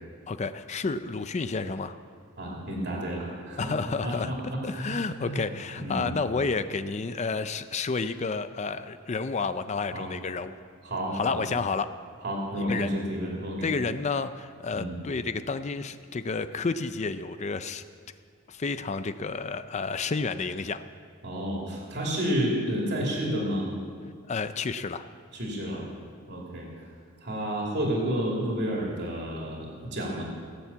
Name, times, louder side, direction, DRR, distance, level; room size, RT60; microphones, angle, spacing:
voice 1, 0.3-1.9 3.6-4.3 4.6-10.5 11.1-11.9 12.6-12.9 13.6-17.8 18.5-20.8 24.3-25.0, left 4 dB, 30° left, 11 dB, 0.4 m, -30 dB
voice 2, 2.4-5.5 5.8-6.2 9.9-10.1 10.8-11.4 12.2-13.7 14.7-14.9 21.2-23.7 25.3-25.8 26.3-26.9 27.2-30.2, equal, 50° right, -3 dB, 2.7 m, -31 dB
17.5 x 7.4 x 8.5 m, 2.1 s
head